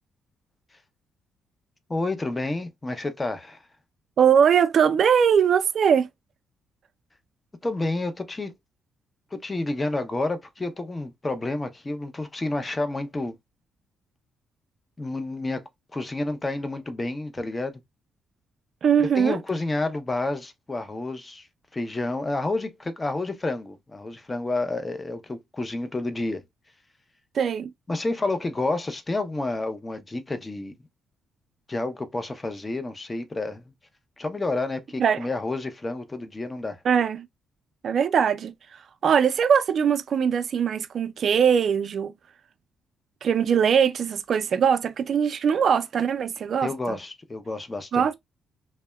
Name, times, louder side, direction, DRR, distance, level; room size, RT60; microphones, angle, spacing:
voice 1, 1.9-3.6 7.6-8.5 9.3-13.4 15.0-15.6 15.9-17.8 19.0-21.5 21.7-26.4 27.9-30.7 31.7-33.6 34.2-36.8 46.6-48.1, left 2 dB, 20° left, 0.5 m, -29 dB
voice 2, 4.2-6.1 18.8-19.4 27.3-27.7 35.0-35.3 36.8-37.3 37.8-42.1 43.2-47.0 47.9-48.1, right 7 dB, 55° right, 0.4 m, -21 dB
2.8 x 2.1 x 2.2 m
cardioid pair, 90°, 0 cm